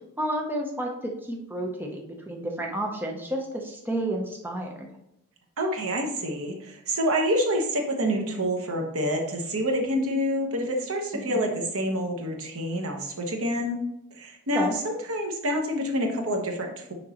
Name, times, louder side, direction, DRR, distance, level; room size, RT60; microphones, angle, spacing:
voice 1, 0.2-4.9 11.1-11.5 14.5-14.8, right 1 dB, 10° right, 0 dB, 0.7 m, -31 dB
voice 2, 5.6-13.8 14.1-16.9, equal, 65° right, 3 dB, 1.1 m, -27 dB
6.1 x 5.3 x 2.9 m, 0.81 s
head